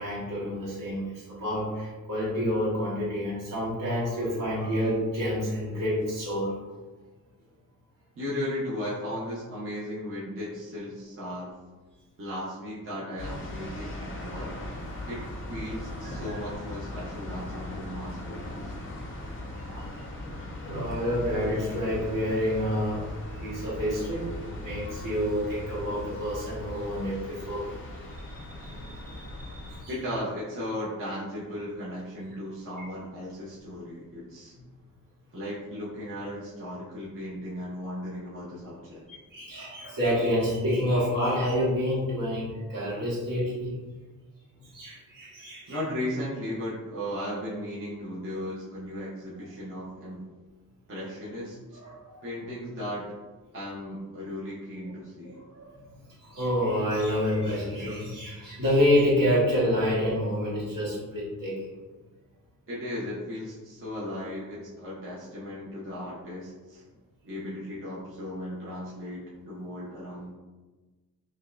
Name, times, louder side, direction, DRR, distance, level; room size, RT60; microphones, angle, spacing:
voice 1, 0.0-6.5 16.0-16.1 18.9-19.0 19.7-20.0 20.6-23.0 23.3-27.7 28.1-29.9 39.1-43.8 44.6-45.8 51.7-52.2 55.2-55.8 56.2-61.7, equal, 60° right, -6 dB, 1.4 m, -28 dB
voice 2, 8.2-11.5 12.2-14.6 15.1-18.7 29.9-34.5 35.3-39.0 45.7-50.2 50.9-51.8 52.2-53.1 53.5-55.4 62.7-66.8 67.2-70.3, left 1 dB, 35° right, -8 dB, 0.8 m, -36 dB
sound 1, 13.2-29.8, left 1 dB, 35° left, 0.6 m, -39 dB
5.3 x 2.2 x 2.5 m, 1.2 s
wide cardioid pair, 155°, 36 cm